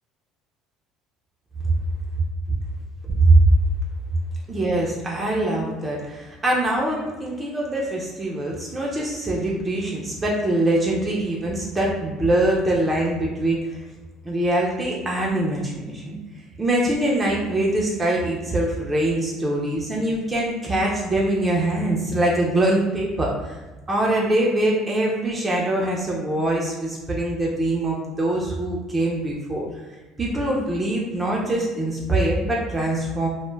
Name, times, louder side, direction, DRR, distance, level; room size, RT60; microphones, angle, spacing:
voice 1, 4.5-13.8 14.2-16.2 16.6-23.6 23.9-29.6 30.2-33.3, right 1 dB, 20° right, -3 dB, 0.5 m, -23 dB
2.2 x 2.1 x 3.1 m, 1.2 s
supercardioid pair, 100°, 0 cm